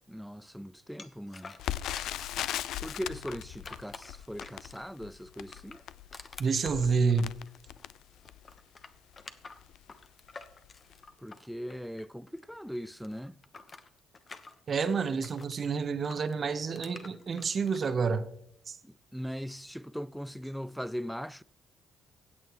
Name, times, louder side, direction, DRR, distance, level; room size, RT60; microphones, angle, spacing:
voice 1, 0.1-1.5 2.8-5.8 11.2-13.4 18.8-21.4, equal, ahead, 0.3 m, -40 dB
sound 1, 1.0-2.4 2.8-5.0 5.4-8.0 8.2-12.4 12.7-15.6 16.0-17.9, left 4 dB, 35° left, 1.0 m, -49 dB
Crackle, 1.6-8.6 9.2-9.3 9.6-9.8 10.4-10.7 10.9-11.0, left 12 dB, 80° left, 0.4 m, -39 dB
voice 2, 6.4-7.3 14.7-18.3 18.7-18.8, right 5 dB, 45° right, 0.9 m, -29 dB
16.0 x 8.5 x 3.1 m
cardioid pair, 90°, 0 cm